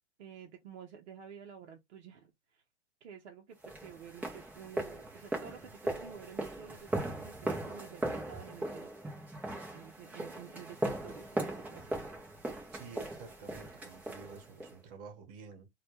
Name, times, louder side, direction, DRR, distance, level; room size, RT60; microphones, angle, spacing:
voice 1, 0.2-2.6 3.0-8.9 9.7-12.0, right 8 dB, 70° right, 0.7 m, -51 dB
sound 1, 3.6-14.8, right 1 dB, 5° right, 0.6 m, -39 dB
voice 2, 12.7-15.7, right 5 dB, 50° right, 1.0 m, -50 dB
2.3 x 2.1 x 2.8 m
hypercardioid pair, 120°, 35 cm